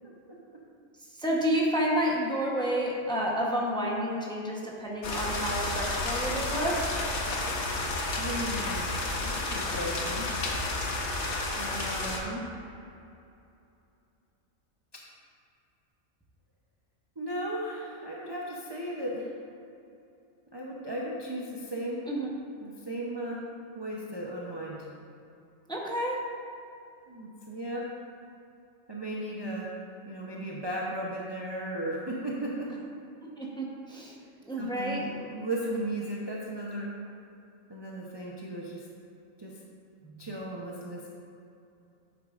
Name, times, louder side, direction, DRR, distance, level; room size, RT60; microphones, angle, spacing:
voice 1, 1.1-6.9 22.1-22.3 25.7-26.1 33.4-34.1 34.4-35.0, equal, 5° left, -3 dB, 0.8 m, -30 dB
sound 1, 5.0-12.2, left 2 dB, 65° left, 1.2 m, -31 dB
voice 2, 8.2-8.9 9.2-10.3 11.5-12.5 17.2-19.3 20.5-22.0 22.6-23.4 23.8-24.9 27.1-27.8 28.9-29.7 30.1-32.7 34.5-36.9 37.7-38.8 39.4-39.5 40.2-41.1, right 1 dB, 25° right, -4 dB, 0.6 m, -35 dB
9.4 x 7.4 x 2.5 m, 2.7 s
omnidirectional pair, 1.4 m